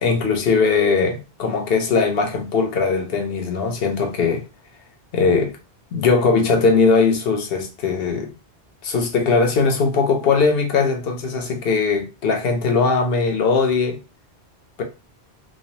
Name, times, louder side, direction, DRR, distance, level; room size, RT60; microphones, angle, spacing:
voice 1, 0.0-4.4 5.1-5.5 5.9-8.3 8.8-14.0 14.8-14.9, left 4 dB, 65° left, 0.8 m, -19 dB
3.1 x 2.3 x 2.7 m
omnidirectional pair, 1.1 m